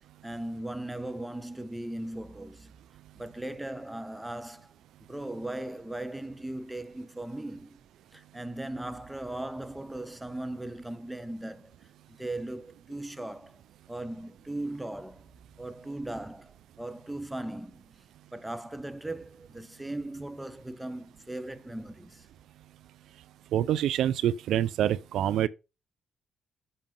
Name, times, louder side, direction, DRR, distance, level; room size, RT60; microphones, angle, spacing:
voice 1, 0.2-2.7 3.1-4.7 5.1-7.8 8.1-13.6 13.9-15.2 15.6-18.0 18.3-22.3, right 1 dB, 10° right, 1.0 m, -38 dB
voice 2, 23.5-25.5, right 11 dB, 80° right, 0.4 m, -26 dB
7.6 x 5.3 x 5.3 m
supercardioid pair, 65°, 0 cm